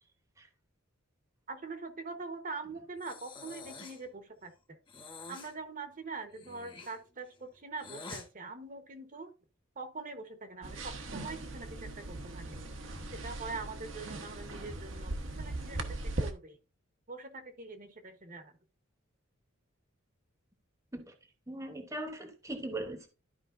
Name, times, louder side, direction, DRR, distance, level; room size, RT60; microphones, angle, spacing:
voice 1, 1.5-4.8 5.3-9.3 9.8-12.6 13.1-16.6 17.1-18.6, right 3 dB, 40° right, 1.1 m, -43 dB
Breathing, 3.0-4.1 4.9-5.5 6.3-8.3, left 4 dB, 25° left, 1.1 m, -48 dB
sound 1, 10.6-16.3, right 2 dB, 65° right, 1.1 m, -39 dB
voice 2, 21.5-23.1, right 1 dB, 15° right, 1.0 m, -39 dB
13.0 x 4.9 x 2.5 m
head